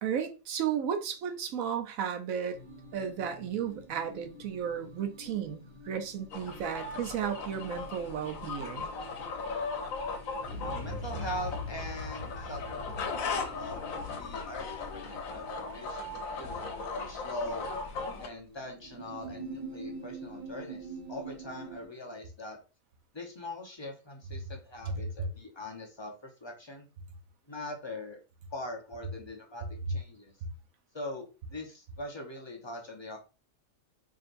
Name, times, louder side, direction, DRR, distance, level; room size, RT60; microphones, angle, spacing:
voice 1, 0.0-2.6 2.9-8.9, right 8 dB, 80° right, 1.1 m, -34 dB
sound 1, 2.5-21.9, right 2 dB, 20° right, 1.2 m, -48 dB
sound 2, 6.3-18.3, left 4 dB, 80° left, 1.2 m, -38 dB
Explosion, 10.4-16.5 16.8-16.9, left 2 dB, 55° right, 1.1 m, -42 dB
voice 2, 10.6-17.7 18.2-22.6 23.1-26.9 27.5-28.2 28.5-30.3 30.9-33.2, left 1 dB, 30° left, 0.6 m, -42 dB
4.8 x 2.8 x 2.6 m
omnidirectional pair, 1.4 m